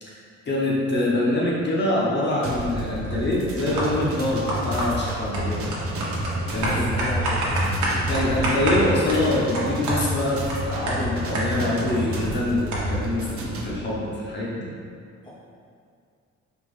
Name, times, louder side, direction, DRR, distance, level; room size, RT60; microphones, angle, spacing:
voice 1, 0.0-5.6 6.5-6.9 8.1-14.7, left 1 dB, 35° left, -4 dB, 0.9 m, -25 dB
sound 1, 2.4-13.7, right 2 dB, 50° right, 0.6 m, -33 dB
sound 2, 3.0-3.3 3.8-4.1 4.5-12.1 12.3-12.4 12.7-13.1, right 1 dB, 70° right, 1.0 m, -27 dB
voice 2, 6.4-8.0 15.2-15.3, left 2 dB, 15° left, -7 dB, 0.6 m, -34 dB
4.4 x 2.5 x 3.2 m, 2.3 s
cardioid pair, 90°, 30 cm